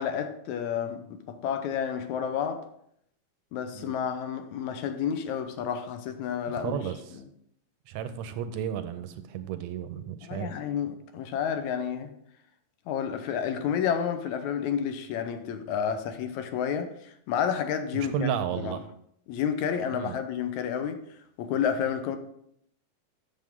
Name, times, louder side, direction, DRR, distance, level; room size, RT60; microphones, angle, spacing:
voice 1, 0.0-2.7 3.5-6.8 10.2-12.1 12.9-18.7 19.3-21.0 21.4-22.2, left 8 dB, 75° left, 2.0 m, -30 dB
voice 2, 6.5-7.2 7.9-10.5 17.9-18.8 19.9-20.2, right 9 dB, 75° right, 1.8 m, -33 dB
7.7 x 7.2 x 3.6 m
omnidirectional pair, 3.5 m